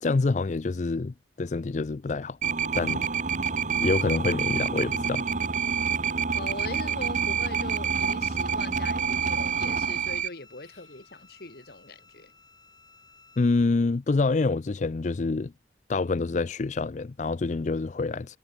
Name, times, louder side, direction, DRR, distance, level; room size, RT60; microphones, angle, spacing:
voice 1, 0.0-2.4 2.7-3.0 3.8-5.3 13.4-15.5 15.9-18.4, left 3 dB, 40° left, 0.4 m, -26 dB
sound 1, 2.4-10.3, right 6 dB, 45° right, 1.2 m, -27 dB
voice 2, 6.3-12.3, left 2 dB, 60° left, 2.2 m, -41 dB
Bowed string instrument, 8.8-13.7, left 4 dB, 25° left, 5.5 m, -57 dB
head